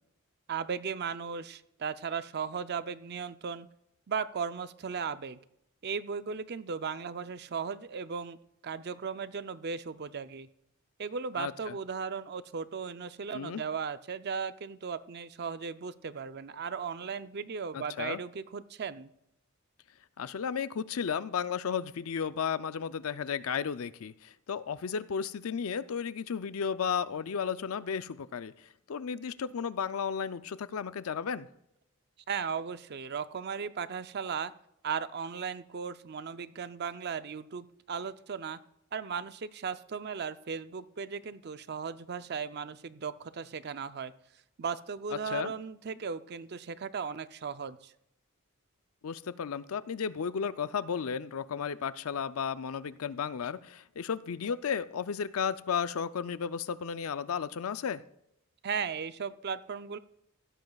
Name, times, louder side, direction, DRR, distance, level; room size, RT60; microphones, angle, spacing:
voice 1, 0.5-3.7 4.1-5.4 5.8-8.4 8.6-10.5 11.0-19.1 32.3-34.5 34.8-38.6 38.9-44.1 44.6-47.9 58.6-60.0, right 6 dB, 50° right, 13 dB, 0.5 m, -36 dB
voice 2, 11.3-11.8 13.3-13.6 17.7-18.2 20.2-31.5 45.3-45.5 49.0-58.0, left 7 dB, 75° left, 14 dB, 0.5 m, -34 dB
16.0 x 13.0 x 2.4 m, 0.79 s
head